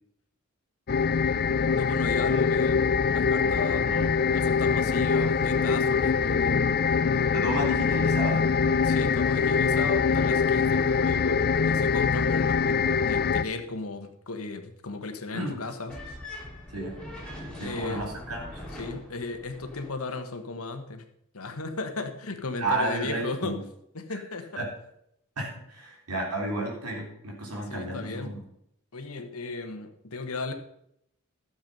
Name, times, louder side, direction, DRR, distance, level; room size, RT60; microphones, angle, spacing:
sound 1, 0.9-13.4, left 5 dB, 45° left, 0.5 m, -24 dB
voice 1, 1.7-2.8 3.1-3.9 4.3-6.7 8.8-16.2 17.6-18.1 18.7-21.0 21.3-23.5 23.9-24.6 27.7-28.3 28.9-30.5, left 3 dB, 70° left, 7 dB, 1.3 m, -35 dB
voice 2, 3.8-4.2 7.3-8.6 15.3-15.6 16.7-17.0 17.5-18.6 22.6-23.6 24.1-24.2 24.6-24.7 25.4-28.4, right 1 dB, 90° right, -2 dB, 3.4 m, -32 dB
sound 2, 15.9-19.9, left 1 dB, 5° left, 2.4 m, -41 dB
12.0 x 7.2 x 5.4 m, 0.75 s
head